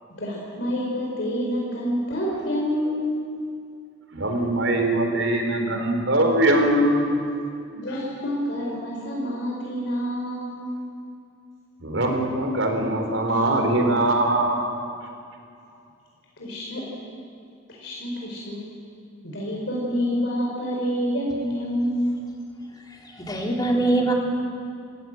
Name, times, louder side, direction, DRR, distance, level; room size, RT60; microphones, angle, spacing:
voice 1, 0.2-3.2 7.7-10.8 15.6-15.7 16.4-16.9 17.8-18.6 19.2-22.1, equal, 65° left, -3 dB, 4.7 m, -27 dB
voice 2, 4.1-7.2 11.8-14.6, right 1 dB, 80° right, 3 dB, 4.1 m, -22 dB
voice 3, 22.9-24.1, right 2 dB, 20° left, -1 dB, 3.5 m, -23 dB
28.5 x 16.0 x 7.8 m, 2.4 s
head